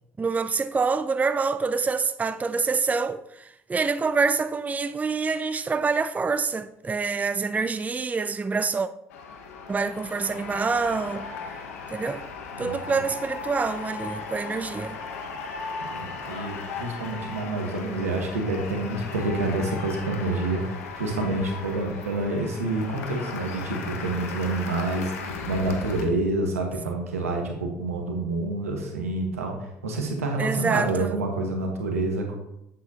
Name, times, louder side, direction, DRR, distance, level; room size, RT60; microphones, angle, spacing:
voice 1, 0.2-8.9 9.7-11.3 11.9-12.2 12.6-15.0 30.4-31.2, right 4 dB, 20° right, 0.4 m, -26 dB
sound 1, 9.1-26.1, left 4 dB, 80° left, 0.9 m, -37 dB
voice 2, 12.6-13.0 15.8-20.6 20.9-29.5 29.8-32.4, right 2 dB, 85° right, 1.4 m, -28 dB
8.2 x 8.1 x 2.8 m
hypercardioid pair, 60°, 8 cm